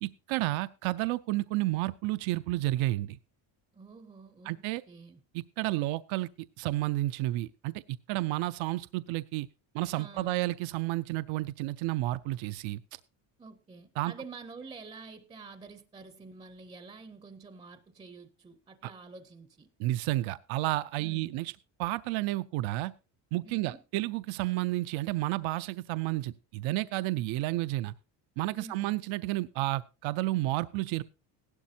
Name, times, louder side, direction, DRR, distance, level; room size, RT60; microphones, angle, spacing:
voice 1, 0.0-3.2 4.5-4.8 5.6-6.3 6.6-9.5 9.7-12.8 14.0-14.1 18.8-18.9 19.8-21.5 21.8-22.9 23.3-27.9 28.4-31.0, right 17 dB, 70° right, 0.6 m, -31 dB
voice 2, 3.7-5.2 9.9-10.5 13.4-19.7 21.0-21.4 23.4-23.8 28.5-29.0, right 4 dB, 15° right, 0.6 m, -48 dB
16.5 x 12.0 x 2.7 m
cardioid pair, 155°, 49 cm